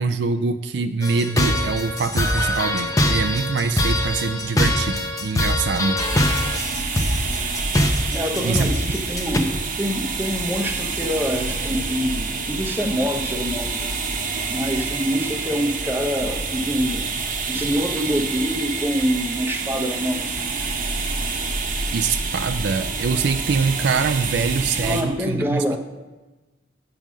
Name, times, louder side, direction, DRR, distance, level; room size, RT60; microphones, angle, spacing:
voice 1, 0.0-6.0 8.4-8.7 21.9-25.8, right 4 dB, 65° right, 9 dB, 0.4 m, -24 dB
sound 1, 1.0-9.4, left 1 dB, 20° left, 0.7 m, -22 dB
sound 2, 6.0-25.0, right 4 dB, 45° right, 1.0 m, -28 dB
voice 2, 8.1-9.5 9.8-13.9 14.5-17.1 17.5-20.3 24.8-25.8, equal, 10° right, 3 dB, 0.8 m, -25 dB
8.7 x 5.4 x 6.2 m, 1.1 s
head